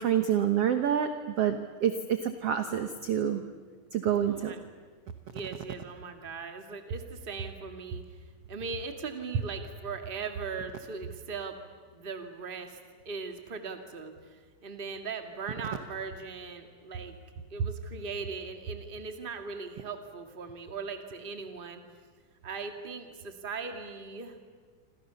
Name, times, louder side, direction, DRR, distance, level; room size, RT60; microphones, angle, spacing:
voice 1, 0.0-3.4 3.9-4.5, right 9 dB, 65° right, 8 dB, 1.5 m, -27 dB
voice 2, 4.3-4.6 5.3-8.2 8.5-11.6 11.9-12.8 13.0-17.2 17.5-21.8 22.4-24.4, right 5 dB, 20° right, 6 dB, 1.4 m, -39 dB
28.5 x 26.5 x 7.0 m, 1.5 s
omnidirectional pair, 4.2 m